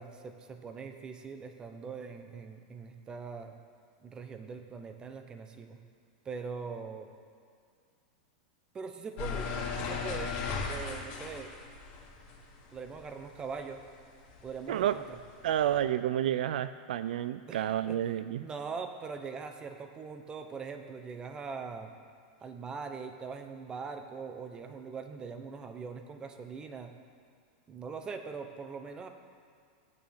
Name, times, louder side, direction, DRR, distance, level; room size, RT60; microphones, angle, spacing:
voice 1, 0.0-3.6 4.0-5.8 6.2-7.1 8.7-10.4 10.7-11.5 12.7-13.8 14.4-15.2 17.5-18.0 18.4-21.9 22.4-26.9 27.7-29.1, right 5 dB, 15° right, 6 dB, 0.8 m, -42 dB
sound 1, 9.2-13.8 14.2-15.8, left 5 dB, 40° left, 1.7 m, -37 dB
voice 2, 14.7-15.0 15.4-18.5, right 11 dB, 80° right, 13 dB, 0.3 m, -30 dB
15.5 x 9.3 x 3.6 m, 2.2 s
supercardioid pair, 145°, 5 cm